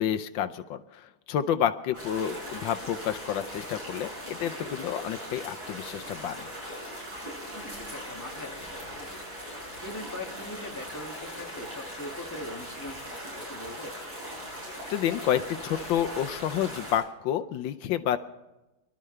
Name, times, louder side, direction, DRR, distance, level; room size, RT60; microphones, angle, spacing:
voice 1, 0.0-6.5 14.9-18.2, left 10 dB, 85° left, 9 dB, 1.4 m, -29 dB
voice 2, 1.9-2.5 7.5-13.9, left 1 dB, 10° left, 0 dB, 1.9 m, -42 dB
sound 1, 1.9-17.0, equal, 65° right, 8.0 m, -40 dB
sound 2, 5.2-5.5 6.1-6.2 7.4-7.5 7.7-8.0, right 1 dB, 85° right, 6.6 m, -49 dB
24.5 x 12.5 x 3.3 m, 0.98 s
omnidirectional pair, 2.1 m